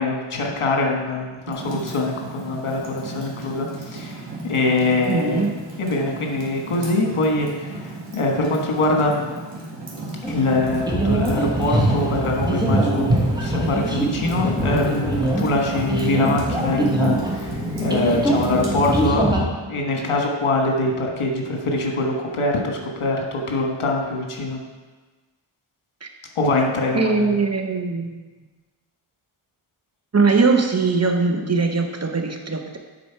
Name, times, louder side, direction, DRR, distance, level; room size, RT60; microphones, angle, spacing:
voice 1, 0.0-5.5 5.8-9.2 10.3-24.6 26.3-27.3, left 2 dB, 80° left, 1 dB, 1.4 m, -23 dB
Fire, 1.5-19.1, right 2 dB, 60° right, 2.1 m, -35 dB
voice 2, 5.1-5.5 26.0-26.1 26.9-28.2 30.1-32.8, right 4 dB, 30° right, 4 dB, 0.8 m, -21 dB
sound 1, 10.2-19.4, right 1 dB, 10° right, 1.2 m, -23 dB
9.4 x 4.2 x 4.6 m, 1.3 s
wide cardioid pair, 80°, 49 cm